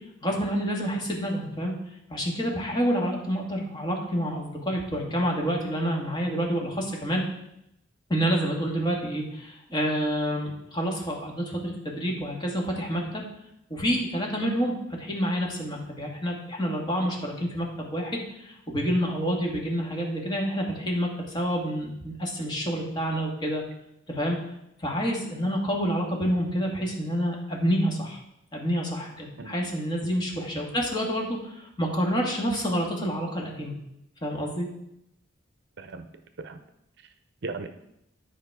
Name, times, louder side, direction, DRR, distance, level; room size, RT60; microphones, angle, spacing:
voice 1, 0.2-1.7 2.1-7.2 8.1-13.2 13.7-21.1 21.3-23.6 24.1-24.4 24.8-28.2 28.5-33.7 34.2-34.7, equal, 25° left, -1 dB, 1.8 m, -28 dB
voice 2, 29.4-29.7 30.0-30.1 30.5-30.6 35.8-36.1 36.4-36.6 37.0-37.1 37.4-37.7, right 3 dB, 60° right, 9 dB, 0.6 m, -38 dB
10.5 x 5.1 x 4.7 m, 0.81 s
head